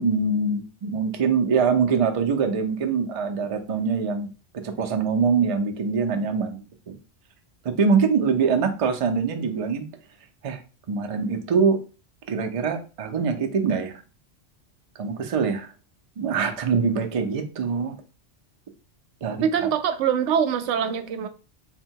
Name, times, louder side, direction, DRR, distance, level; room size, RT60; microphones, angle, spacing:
voice 1, 0.0-4.3 4.5-6.6 6.9-7.0 7.6-9.9 10.4-10.6 10.9-11.8 12.3-14.0 15.0-15.7 16.2-18.0 19.2-19.5, right 5 dB, 50° right, 5 dB, 0.4 m, -23 dB
voice 2, 19.4-21.3, right 8 dB, 90° right, 9 dB, 0.9 m, -23 dB
3.6 x 2.2 x 4.4 m, 0.34 s
omnidirectional pair, 1.2 m